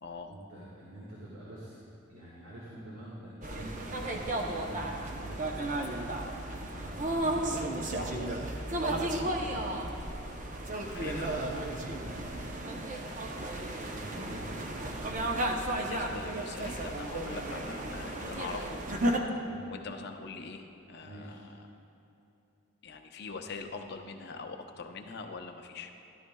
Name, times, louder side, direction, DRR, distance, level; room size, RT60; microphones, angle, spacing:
voice 1, 0.2-1.8 2.1-5.7 6.5-8.1 9.3-9.9 11.0-12.8 13.4-14.9 19.5-19.7 21.0-21.5, right 1 dB, 80° right, -6 dB, 1.7 m, -46 dB
sound 1, 3.4-19.2, right 1 dB, 40° right, 0.7 m, -34 dB
voice 2, 10.9-11.3 11.5-11.6 15.6-18.8 19.7-21.6 22.8-25.9, left 4 dB, 50° left, 4 dB, 0.6 m, -43 dB
12.5 x 12.5 x 2.3 m, 3.0 s
head